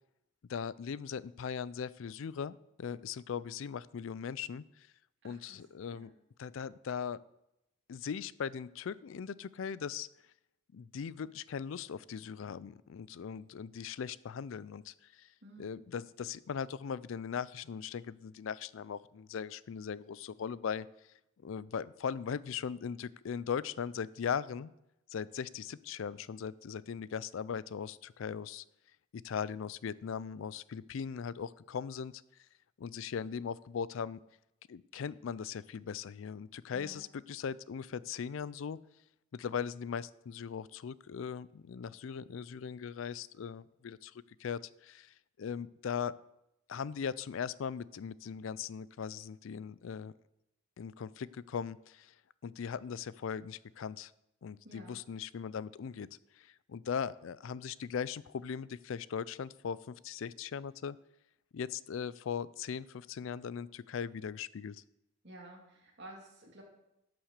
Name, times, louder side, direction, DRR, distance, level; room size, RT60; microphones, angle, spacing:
voice 1, 0.5-4.9 5.2-6.1 6.4-7.2 7.9-10.1 10.7-15.3 15.6-20.9 21.4-24.7 25.1-28.6 29.2-32.1 32.8-34.2 34.7-38.8 39.3-44.1 44.4-46.1 46.7-50.1 50.8-52.1 52.4-54.1 54.4-56.1 56.4-61.0 61.5-64.8, left 7 dB, 70° left, 19 dB, 0.4 m, -39 dB
voice 2, 5.2-5.6 5.9-6.1 15.4-15.8 36.7-37.1 54.6-55.0 65.2-66.6, right 1 dB, 55° right, -1 dB, 2.8 m, -52 dB
11.5 x 6.1 x 6.6 m, 0.86 s
head